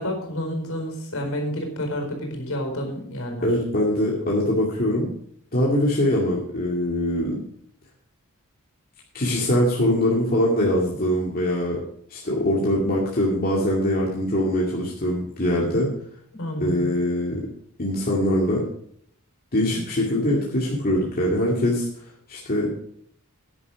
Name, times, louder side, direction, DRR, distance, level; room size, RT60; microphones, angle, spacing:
voice 1, 0.0-3.5 15.6-15.7 16.3-16.9, equal, 65° left, 3 dB, 4.4 m, -29 dB
voice 2, 3.4-5.1 5.5-7.4 9.1-11.8 12.1-15.9 16.6-17.5 17.8-18.6 19.5-21.9 22.3-22.7, left 1 dB, 40° left, -4 dB, 2.3 m, -22 dB
11.0 x 10.0 x 4.9 m, 0.66 s
head